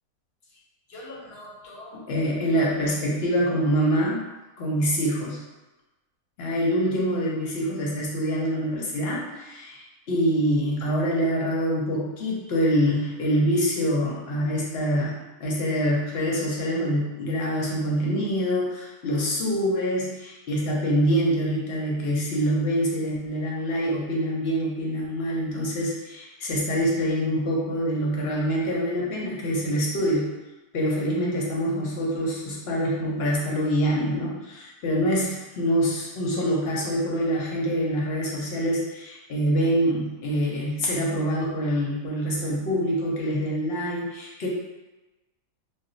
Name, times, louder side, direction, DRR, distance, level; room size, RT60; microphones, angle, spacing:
voice 1, 0.9-4.2 4.6-5.4 6.4-30.3 30.7-44.5, equal, 60° left, -4 dB, 0.7 m, -25 dB
2.5 x 2.0 x 3.8 m, 1.1 s
omnidirectional pair, 1.6 m